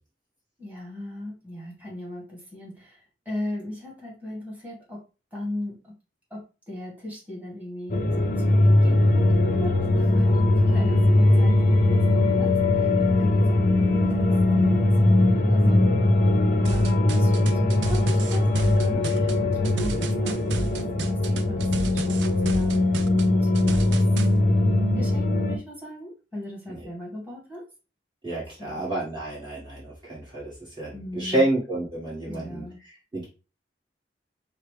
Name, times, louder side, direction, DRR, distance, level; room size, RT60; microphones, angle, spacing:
voice 1, 0.6-6.0 6.3-16.1 16.5-22.9 23.2-24.0 24.9-27.6 28.5-28.9 30.9-31.5 32.3-32.8, left 1 dB, 10° right, -5 dB, 1.8 m, -38 dB
sound 1, 7.9-25.6, left 2 dB, 50° left, 0.6 m, -20 dB
sound 2, 16.6-24.3, right 4 dB, 85° right, 0.4 m, -33 dB
voice 2, 28.2-33.2, right 1 dB, 25° right, -8 dB, 1.5 m, -29 dB
5.6 x 2.1 x 3.1 m, 0.32 s
head